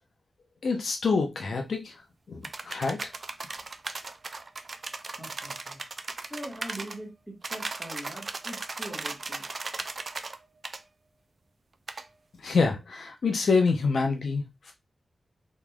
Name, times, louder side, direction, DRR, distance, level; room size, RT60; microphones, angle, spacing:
voice 1, 0.6-2.0 2.3-3.1 12.4-14.7, left 4 dB, 70° left, 0.7 m, -26 dB
sound 1, 2.4-7.0 7.4-10.4 10.6-10.8 11.9-12.1, right 3 dB, 40° right, 0.3 m, -37 dB
voice 2, 5.2-5.8 6.3-9.4, right 1 dB, ahead, 1.4 m, -42 dB
3.8 x 3.1 x 2.3 m
wide cardioid pair, 165°, 0 cm